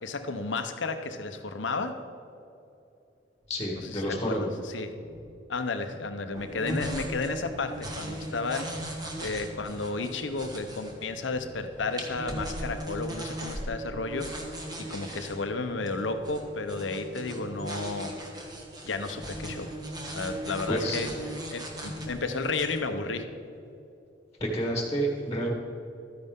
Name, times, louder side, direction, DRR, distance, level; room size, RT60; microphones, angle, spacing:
voice 1, 0.0-2.0 3.8-4.9 5.5-14.3 14.8-18.1 18.8-19.7 20.1-21.1 21.5-23.3, left 3 dB, 80° left, 8 dB, 0.9 m, -32 dB
sound 1, 3.4-13.2, equal, 65° right, 2.6 m, -52 dB
voice 2, 3.5-4.5 20.7-21.2 24.4-25.5, right 1 dB, 20° left, -1 dB, 1.5 m, -29 dB
sound 2, 6.3-22.8, right 1 dB, 20° right, 1.4 m, -38 dB
13.0 x 9.6 x 3.7 m, 2.8 s
head